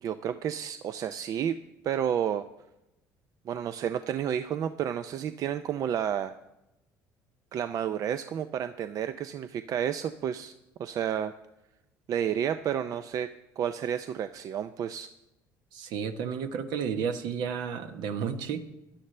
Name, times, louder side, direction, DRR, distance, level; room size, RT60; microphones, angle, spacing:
voice 1, 0.0-1.6 1.8-2.5 3.5-6.3 7.5-10.5 10.8-11.3 12.1-13.3 13.6-15.1, right 9 dB, 50° right, 11 dB, 0.5 m, -31 dB
voice 2, 15.7-18.7, right 7 dB, 70° right, 8 dB, 1.1 m, -32 dB
16.5 x 11.5 x 3.3 m, 0.93 s
supercardioid pair, 90°, 8 cm